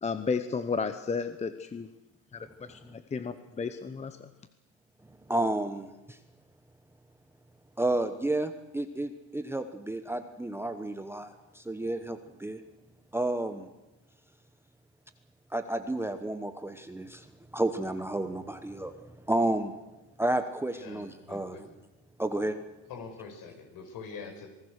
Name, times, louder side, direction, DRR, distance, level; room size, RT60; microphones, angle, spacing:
voice 1, 0.0-1.9 2.3-4.3, left 5 dB, 15° left, 11 dB, 0.9 m, -33 dB
voice 2, 5.3-6.2 7.8-12.6 13.1-13.7 15.5-18.9 19.3-19.8 20.2-21.7 22.2-22.6, right 1 dB, 5° right, 8 dB, 1.0 m, -31 dB
voice 3, 20.7-21.6 22.9-24.5, left 5 dB, 55° left, 4 dB, 5.9 m, -44 dB
26.0 x 18.5 x 6.5 m, 1.0 s
supercardioid pair, 110°, 40 cm